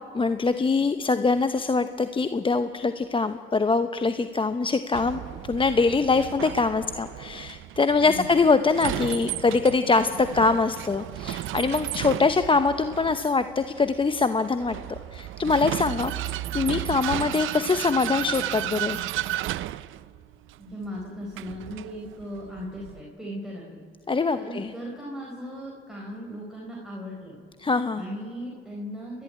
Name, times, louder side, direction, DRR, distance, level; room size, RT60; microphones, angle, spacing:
voice 1, 0.1-19.0 24.1-24.7 27.6-28.0, left 4 dB, 25° left, 10 dB, 0.8 m, -23 dB
Vehicle, 4.9-23.0, right 14 dB, 80° right, 0.6 m, -34 dB
voice 2, 8.0-8.4 20.6-27.4 28.0-29.2, equal, ahead, -4 dB, 4.3 m, -38 dB
29.5 x 12.0 x 9.9 m, 2.3 s
cardioid pair, 90°, 20 cm